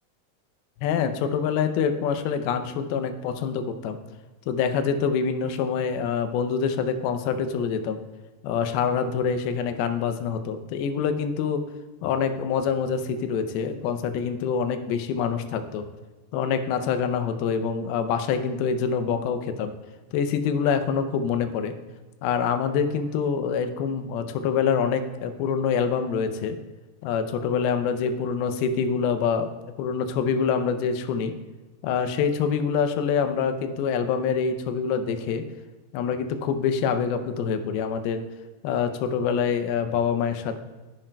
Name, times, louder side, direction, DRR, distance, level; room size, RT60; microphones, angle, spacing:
voice 1, 0.8-4.0 4.5-8.0 8.4-11.6 12.0-15.9 16.3-19.7 20.1-21.7 22.2-26.6 27.0-29.5 29.8-31.3 31.8-35.4 35.9-38.2 38.6-40.6, left 6 dB, 85° left, 8 dB, 2.6 m, -25 dB
10.5 x 10.0 x 2.2 m, 1.2 s
omnidirectional pair, 4.3 m